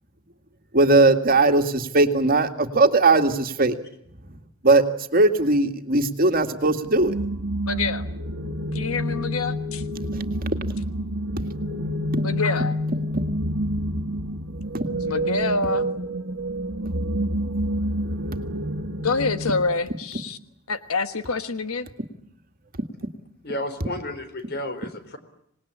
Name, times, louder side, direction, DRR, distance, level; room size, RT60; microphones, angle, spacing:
voice 1, 0.7-3.7 4.6-4.9 5.1-7.2 12.1-12.2 13.1-13.2, right 2 dB, 40° right, 6 dB, 2.0 m, -19 dB
sound 1, 7.0-19.7, equal, 75° right, 1.7 m, -28 dB
voice 2, 7.7-8.1 8.7-9.8 12.2-12.7 15.0-15.9 19.0-20.4 20.7-21.9, left 3 dB, 75° left, 10 dB, 1.4 m, -26 dB
voice 3, 23.4-25.2, left 1 dB, 50° left, 9 dB, 4.2 m, -32 dB
26.5 x 19.5 x 9.9 m, 0.75 s
head